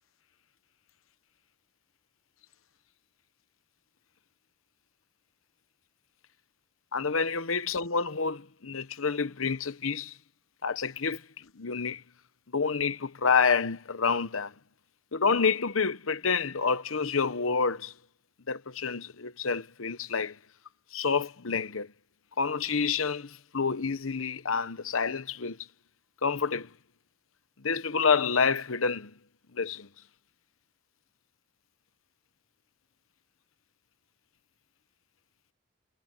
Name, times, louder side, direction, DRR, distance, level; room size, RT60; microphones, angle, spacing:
voice 1, 6.9-10.2 10.6-11.2 11.6-12.0 12.5-14.5 15.1-17.9 18.5-20.4 20.9-21.9 22.4-25.7 26.2-26.7 27.6-29.1 29.5-29.9, left 5 dB, 75° left, 1.0 m, -28 dB
head